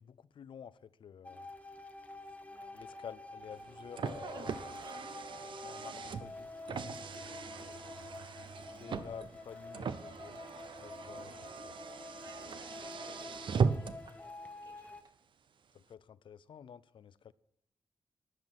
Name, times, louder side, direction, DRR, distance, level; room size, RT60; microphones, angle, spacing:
voice 1, 0.0-1.5 2.7-4.5 5.6-6.5 8.7-10.4 10.8-11.4 11.6-11.8 15.7-17.3, left 8 dB, 75° left, 0.5 m, -50 dB
sound 1, 1.2-15.0, left 2 dB, 15° left, 0.8 m, -48 dB
voice 2, 2.5-3.1 4.3-5.1 12.2-15.1, right 3 dB, 50° right, 2.3 m, -59 dB
Car, 3.5-14.1, right 5 dB, 75° right, 0.7 m, -39 dB
13.0 x 10.5 x 6.1 m
wide cardioid pair, 145°, 9 cm